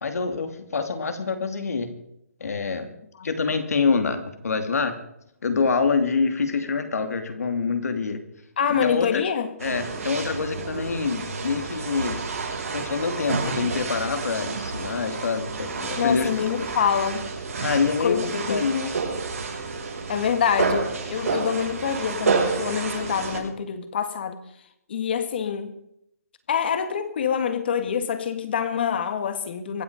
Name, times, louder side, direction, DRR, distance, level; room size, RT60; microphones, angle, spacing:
voice 1, 0.0-1.9 2.4-2.9 3.2-5.0 5.4-8.2 8.8-9.2 9.6-12.2 12.7-16.3 17.6-18.9, left 5 dB, 70° left, 7 dB, 2.9 m, -26 dB
voice 2, 8.6-9.5 16.0-17.3 18.0-18.7 20.1-24.4 24.9-25.7 26.5-29.8, left 7 dB, 40° left, 10 dB, 1.9 m, -26 dB
sound 1, 9.6-23.4, right 4 dB, 65° right, 6.3 m, -30 dB
24.5 x 8.8 x 5.1 m, 0.76 s
hypercardioid pair, 170°, 9 cm